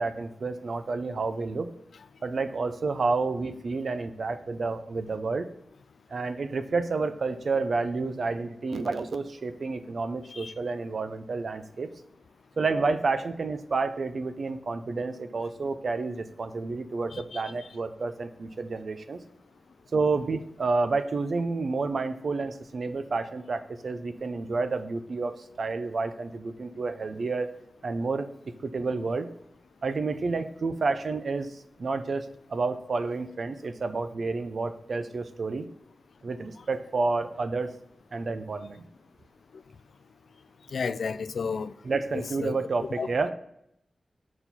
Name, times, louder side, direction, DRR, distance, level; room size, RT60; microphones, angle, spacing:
voice 1, 0.0-1.7 2.2-5.5 6.1-11.9 12.6-19.2 19.9-27.5 27.8-29.3 29.8-35.7 36.2-37.7 38.1-38.8 41.8-43.3, right 3 dB, 60° right, 0.6 m, -30 dB
voice 2, 40.7-41.7 42.4-42.6 43.0-43.1, left 5 dB, 80° left, 0.3 m, -31 dB
6.8 x 4.3 x 5.6 m
wide cardioid pair, 110°, 0 cm